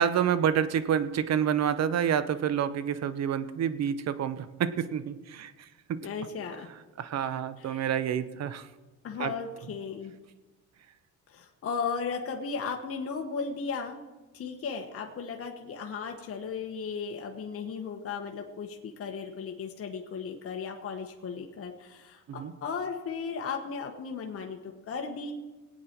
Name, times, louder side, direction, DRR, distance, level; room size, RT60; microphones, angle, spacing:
voice 1, 0.0-6.1 7.0-8.7 9.2-9.3 22.3-22.5, right 8 dB, 50° right, 13 dB, 0.9 m, -28 dB
voice 2, 6.0-6.7 7.6-7.9 9.0-10.1 11.3-14.0 14.3-25.4, left 5 dB, 45° left, 2 dB, 1.3 m, -36 dB
20.0 x 8.7 x 4.5 m, 1.2 s
cardioid pair, 115°, 33 cm